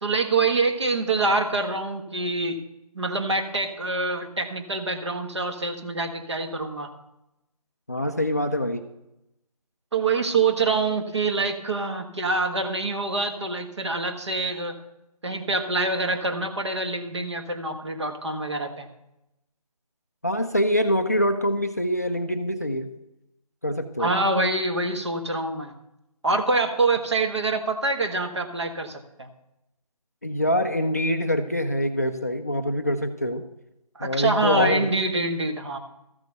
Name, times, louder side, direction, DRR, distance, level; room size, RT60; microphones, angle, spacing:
voice 1, 0.0-2.6 2.9-6.9 9.9-14.8 15.2-18.9 24.0-25.7 26.2-29.3 33.9-35.8, right 3 dB, 45° right, 5 dB, 1.5 m, -25 dB
voice 2, 7.9-8.8 20.2-22.9 23.6-24.1 30.2-33.4 34.0-34.9, equal, 25° left, 6 dB, 0.4 m, -24 dB
13.5 x 6.4 x 6.6 m, 0.88 s
figure-of-eight pair, 165°, 20 cm